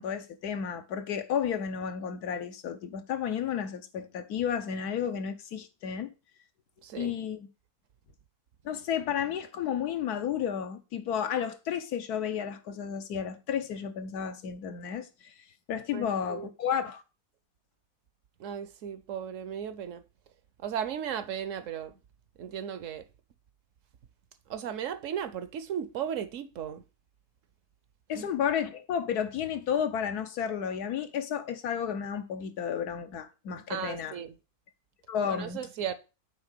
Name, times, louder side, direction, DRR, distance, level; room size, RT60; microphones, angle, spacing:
voice 1, 0.0-6.1 7.0-7.5 8.6-15.3 15.7-17.0 28.1-34.2 35.1-35.6, left 8 dB, 90° left, 1.4 m, -32 dB
voice 2, 6.8-7.1 15.9-16.5 18.4-20.0 20.6-21.9 22.4-23.0 24.5-26.8 28.1-28.3 33.7-34.3 35.2-35.9, right 8 dB, 65° right, 0.9 m, -36 dB
8.6 x 3.6 x 6.5 m
omnidirectional pair, 1.6 m